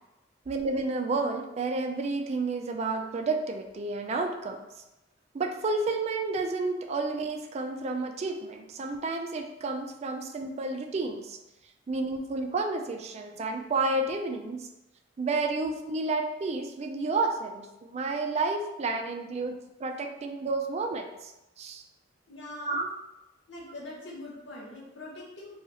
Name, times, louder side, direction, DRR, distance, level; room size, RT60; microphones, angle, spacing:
voice 1, 0.5-4.6 5.3-11.4 11.9-14.7 15.2-21.3 21.6-21.8 22.6-22.9, right 3 dB, 35° right, 4 dB, 0.3 m, -31 dB
voice 2, 22.3-22.8 23.5-25.6, left 1 dB, 65° left, -4 dB, 1.0 m, -42 dB
2.8 x 2.3 x 4.0 m, 0.96 s
head